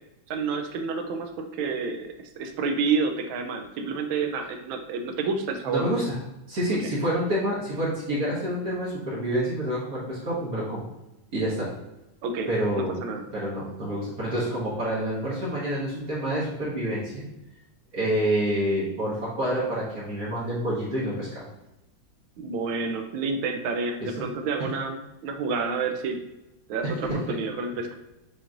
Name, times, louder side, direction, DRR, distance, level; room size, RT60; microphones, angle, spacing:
voice 1, 0.3-5.9 12.2-12.5 12.8-13.3 22.4-26.2 26.7-27.9, right 4 dB, 90° right, 5 dB, 1.4 m, -29 dB
voice 2, 5.7-6.2 6.5-10.9 11.3-11.7 12.5-13.0 13.3-17.3 17.9-21.5 24.0-24.3 26.8-27.4, right 1 dB, 55° right, -8 dB, 1.6 m, -28 dB
7.2 x 2.9 x 2.5 m, 0.94 s
omnidirectional pair, 2.1 m